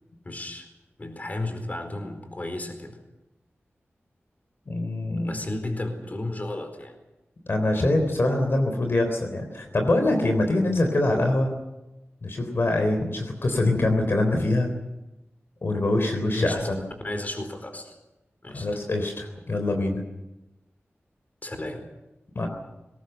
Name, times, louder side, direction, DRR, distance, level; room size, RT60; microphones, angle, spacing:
voice 1, 0.2-0.7 1.0-3.0 5.2-6.9 16.3-16.6 17.0-17.9 18.4-18.7 21.4-21.8, left 2 dB, 35° left, 7 dB, 4.5 m, -33 dB
voice 2, 4.7-5.4 7.5-11.5 12.2-14.7 15.6-16.8 18.5-20.0 22.4-22.5, left 2 dB, 60° left, 4 dB, 3.7 m, -24 dB
22.0 x 19.0 x 8.0 m, 0.99 s
wide cardioid pair, 75°, 5 cm